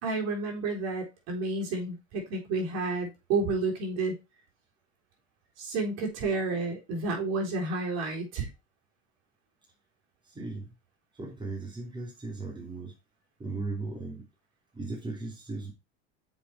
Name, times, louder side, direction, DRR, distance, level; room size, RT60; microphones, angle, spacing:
voice 1, 0.0-4.1 5.6-8.5, right 3 dB, 55° right, 1 dB, 4.0 m, -30 dB
voice 2, 10.2-10.7 11.1-12.9 13.4-14.3 14.7-15.7, right 3 dB, 15° right, -1 dB, 2.9 m, -37 dB
7.1 x 5.3 x 4.7 m, 0.25 s
supercardioid pair, 125°, 32 cm